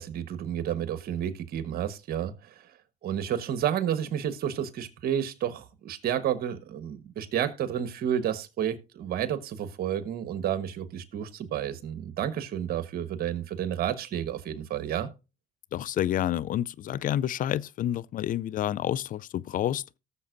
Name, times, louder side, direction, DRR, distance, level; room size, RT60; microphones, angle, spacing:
voice 1, 0.0-2.7 3.0-15.1, right 10 dB, 60° right, 1.3 m, -31 dB
voice 2, 15.7-19.8, left 11 dB, 50° left, 0.4 m, -29 dB
18.0 x 6.9 x 2.6 m
supercardioid pair, 70°, 17 cm